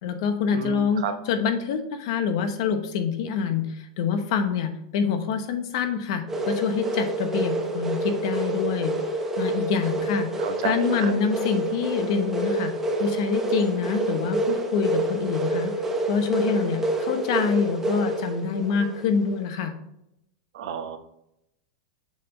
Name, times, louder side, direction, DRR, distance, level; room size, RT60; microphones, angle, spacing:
voice 1, 0.0-8.9 9.4-10.3 10.6-12.7 13.0-15.7 16.1-19.7, left 6 dB, 55° left, 7 dB, 1.0 m, -26 dB
voice 2, 0.5-1.1 10.4-11.1 20.5-21.0, right 7 dB, 70° right, 7 dB, 0.9 m, -30 dB
sound 1, 6.3-19.4, right 2 dB, 10° right, 0.7 m, -28 dB
7.5 x 3.7 x 4.0 m, 0.80 s
supercardioid pair, 165°, 3 cm